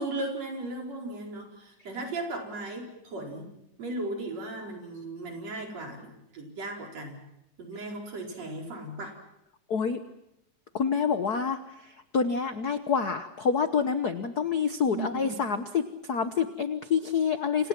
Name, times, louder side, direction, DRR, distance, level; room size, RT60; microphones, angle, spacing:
voice 1, 0.0-3.5 3.8-7.2 7.6-9.2 14.9-15.4, right 2 dB, 60° right, 1 dB, 5.7 m, -36 dB
voice 2, 9.7-10.0 10.7-17.7, left 6 dB, 65° left, 10 dB, 0.9 m, -27 dB
30.0 x 26.0 x 6.0 m, 0.84 s
omnidirectional pair, 3.3 m